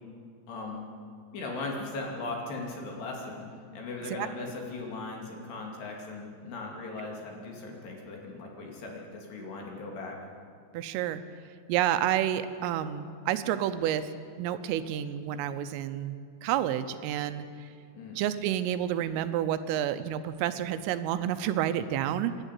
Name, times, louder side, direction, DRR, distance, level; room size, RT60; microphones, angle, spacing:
voice 1, 0.5-0.9 1.3-3.4 3.7-10.2 17.9-18.2, left 3 dB, 60° left, 0 dB, 4.3 m, -38 dB
voice 2, 4.1-4.5 10.7-11.2 11.7-14.1 14.4-17.7 18.2-22.4, right 11 dB, 85° right, 10 dB, 3.3 m, -30 dB
28.0 x 11.5 x 8.3 m, 2.2 s
omnidirectional pair, 5.9 m